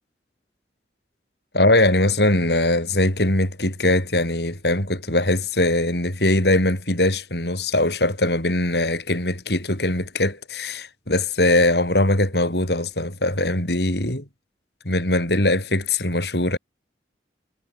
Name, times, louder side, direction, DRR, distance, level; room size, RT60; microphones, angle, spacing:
voice 1, 1.5-14.3 14.8-16.6, left 1 dB, 70° left, 6.5 m, -21 dB
head